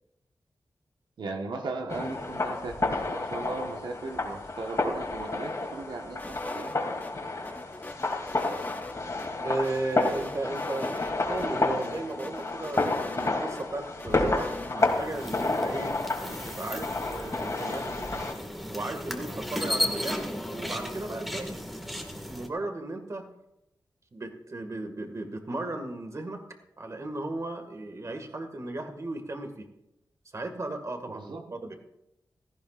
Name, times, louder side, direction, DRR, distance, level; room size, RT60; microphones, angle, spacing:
voice 1, 1.2-6.7 31.1-31.4, right 3 dB, 85° right, 2 dB, 1.4 m, -37 dB
sound 1, 1.9-18.3, left 2 dB, 45° left, 2.8 m, -30 dB
sound 2, 6.2-7.1 7.4-9.3 9.6-11.1 11.4-11.5 11.8-13.6 14.0-14.8, left 2 dB, 20° left, 1.1 m, -41 dB
voice 2, 9.4-18.0 18.7-21.7 21.9-23.3 24.1-26.5 26.8-29.7 30.3-31.7, right 2 dB, 40° right, 5 dB, 1.9 m, -35 dB
sound 3, 14.8-22.5, equal, ahead, 1.9 m, -35 dB
17.0 x 14.5 x 2.5 m, 0.85 s
wide cardioid pair, 105°, 8 cm